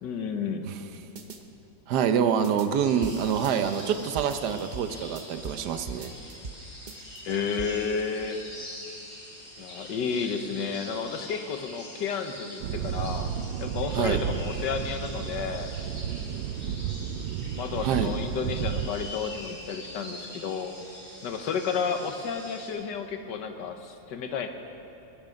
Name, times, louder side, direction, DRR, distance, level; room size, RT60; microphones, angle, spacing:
voice 1, 0.0-0.7 7.2-8.4 9.6-13.3 13.6-15.7 17.5-20.8 21.2-24.5, left 6 dB, 70° left, 6 dB, 1.6 m, -31 dB
sound 1, 1.2-1.4 2.4-2.7 3.0-5.6 5.9-6.6 6.9-7.7, right 4 dB, 50° right, 0.5 m, -41 dB
voice 2, 1.9-6.1 13.9-14.2 17.8-18.1, right 8 dB, 65° right, 9 dB, 1.3 m, -26 dB
sound 2, 2.7-22.7, left 1 dB, 35° left, 3.8 m, -44 dB
sound 3, 12.6-18.9, right 9 dB, 85° right, 1.3 m, -32 dB
20.0 x 12.0 x 5.2 m, 2.8 s
omnidirectional pair, 2.0 m